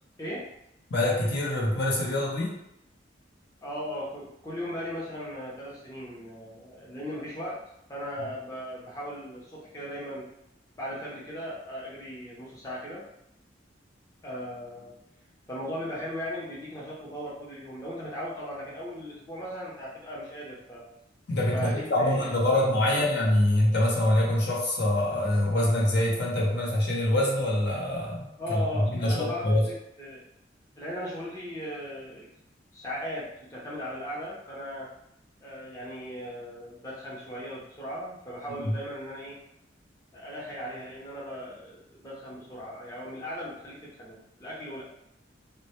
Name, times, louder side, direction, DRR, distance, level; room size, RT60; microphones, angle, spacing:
voice 1, 0.9-2.5 21.3-29.7 38.5-38.7, left 1 dB, 60° left, -3 dB, 0.6 m, -25 dB
voice 2, 3.6-7.6 7.9-10.3 10.8-13.0 14.2-14.9 15.5-20.8 21.5-22.3 22.6-22.7 22.9-23.0 28.4-30.2 30.8-32.3 32.7-34.9 35.4-39.4 40.1-44.8, equal, 20° left, -6 dB, 0.5 m, -37 dB
2.1 x 2.0 x 2.9 m, 0.80 s
head